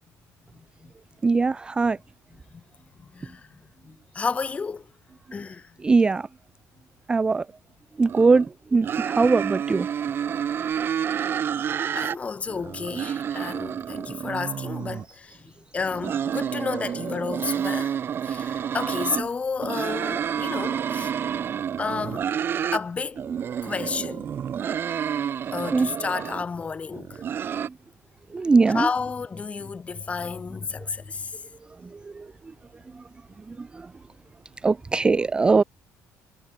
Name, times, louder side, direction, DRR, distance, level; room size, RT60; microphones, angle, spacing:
voice 1, 0.5-0.9 2.5-2.6 3.0-3.5 3.8-4.9 5.3-5.7 11.9-18.0 18.2-21.1 21.8-22.3 22.7-23.2 23.6-24.3 25.5-27.2 28.7-31.4, left 5 dB, 20° left, 1.9 m, -31 dB
voice 2, 1.2-2.0 5.8-6.3 7.1-7.5 8.0-8.4 8.7-9.9 20.5-20.6 25.7-25.9 27.6-27.7 28.3-28.9 31.9-32.3 32.9-33.0 33.5-33.9 34.6-35.6, right 4 dB, 15° right, 0.5 m, -21 dB
sound 1, 8.1-8.5 8.8-12.2 12.5-15.0 15.8-19.2 19.6-22.8 23.1-26.4 26.9-27.7, right 8 dB, 35° right, 4.7 m, -29 dB
cardioid pair, 165°, 6 cm